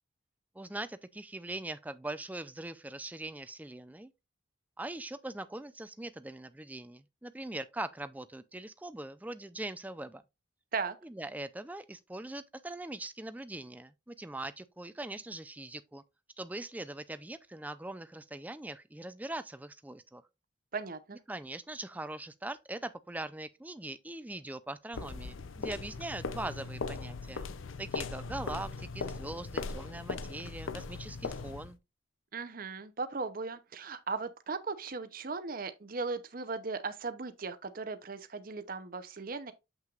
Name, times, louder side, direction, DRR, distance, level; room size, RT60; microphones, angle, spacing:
voice 1, 0.6-4.1 4.8-10.2 11.0-16.0 16.4-20.2 21.3-27.5 27.8-31.8, right 2 dB, 10° right, 0.4 m, -41 dB
voice 2, 20.7-21.2 32.3-39.5, right 4 dB, 45° right, 0.7 m, -37 dB
sound 1, 24.9-31.8, left 4 dB, 85° left, 0.6 m, -39 dB
7.6 x 5.9 x 2.4 m
head